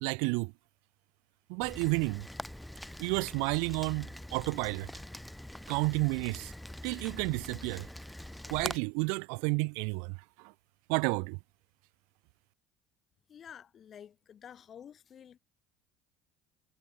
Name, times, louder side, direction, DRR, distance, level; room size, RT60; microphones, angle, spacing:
voice 1, 0.0-0.5 1.5-2.3 3.0-4.9 5.7-6.5 6.8-7.9 8.5-10.5 10.9-11.4, right 40 dB or more, 75° right, 1.4 m, -31 dB
Rain, 1.6-8.8, left 1 dB, 5° left, 4.1 m, -44 dB
voice 2, 13.3-15.4, left 8 dB, 45° left, 7.4 m, -50 dB
hypercardioid pair, 75°, 0 cm